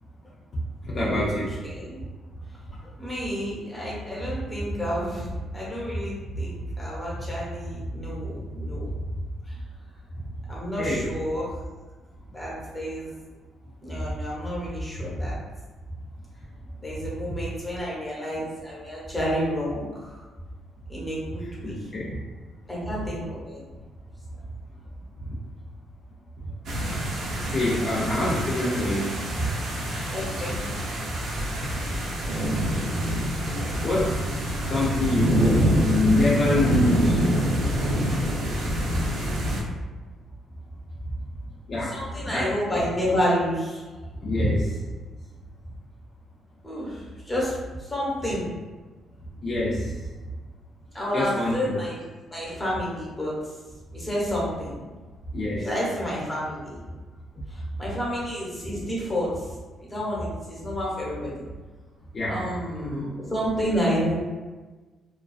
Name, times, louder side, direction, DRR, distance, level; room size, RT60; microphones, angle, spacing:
voice 1, 0.8-1.5 10.8-11.1 21.4-22.2 27.5-29.5 33.8-34.2 34.7-37.2 41.7-42.8 44.2-44.7 49.4-49.9 51.1-51.7 55.3-55.7 62.1-62.5, left 1 dB, 45° left, -6 dB, 0.5 m, -26 dB
voice 2, 1.6-2.0 3.0-8.9 9.5-9.6 10.5-11.5 12.3-13.1 13.8-15.4 16.8-20.2 20.9-21.7 22.7-23.7 30.1-30.6 33.7-33.8 41.9-43.9 44.2-44.5 46.6-48.5 50.9-52.0 52.3-53.3 53.9-54.8 55.6-56.8 57.5-59.4 59.8-61.4 62.2-64.1, equal, 15° left, -6 dB, 0.9 m, -29 dB
sound 1, 26.6-39.6, equal, 65° right, 0.6 m, -26 dB
2.3 x 2.3 x 2.3 m, 1.3 s
cardioid pair, 90°, 0 cm